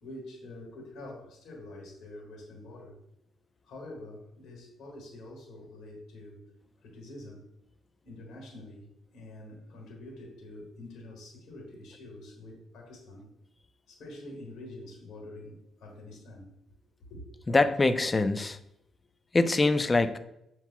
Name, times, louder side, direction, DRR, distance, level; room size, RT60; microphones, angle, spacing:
voice 1, 0.0-3.0 3.6-6.5 6.8-7.5 8.0-8.8 9.1-13.3 13.9-16.8 17.1-17.2, left 1 dB, 80° left, 1.5 m, -46 dB
voice 2, 17.5-18.6 19.3-20.2, left 3 dB, 25° left, 0.3 m, -24 dB
6.9 x 2.9 x 2.3 m
cardioid pair, 90°, 0 cm